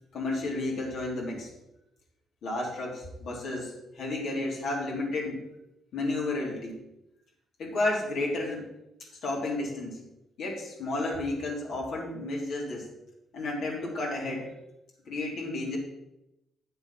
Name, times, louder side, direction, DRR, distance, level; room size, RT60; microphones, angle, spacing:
voice 1, 0.1-1.5 2.4-5.5 5.9-6.8 7.6-8.7 9.2-10.0 10.4-12.9 13.3-14.5 15.1-15.8, left 2 dB, 70° left, -3 dB, 3.3 m, -32 dB
8.9 x 6.8 x 5.9 m, 0.90 s
cardioid pair, 90°, 0 cm